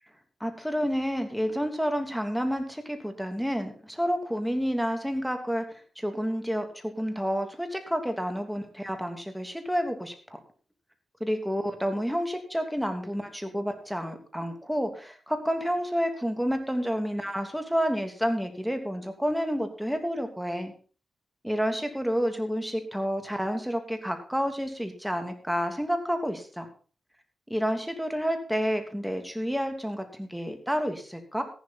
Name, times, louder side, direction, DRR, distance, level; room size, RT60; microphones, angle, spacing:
voice 1, 0.4-10.1 11.2-20.7 21.4-26.7 27.5-31.4, equal, ahead, 6 dB, 2.9 m, -29 dB
14.5 x 11.5 x 4.3 m, 0.39 s
cardioid pair, 75°, 0 cm